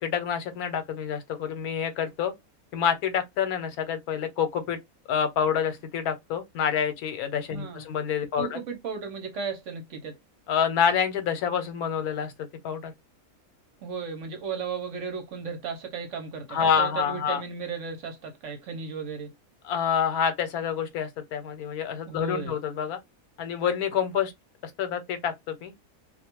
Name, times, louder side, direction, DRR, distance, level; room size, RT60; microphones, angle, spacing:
voice 1, 0.0-2.3 2.7-4.8 5.1-8.6 10.5-12.3 12.6-12.9 16.5-17.4 19.6-23.0 23.4-24.3 24.8-25.7, left 7 dB, 85° left, 1.1 m, -27 dB
voice 2, 7.5-7.8 8.4-10.2 13.8-19.3 22.1-22.6, right 5 dB, 65° right, 0.9 m, -35 dB
2.4 x 2.2 x 2.8 m
omnidirectional pair, 1.6 m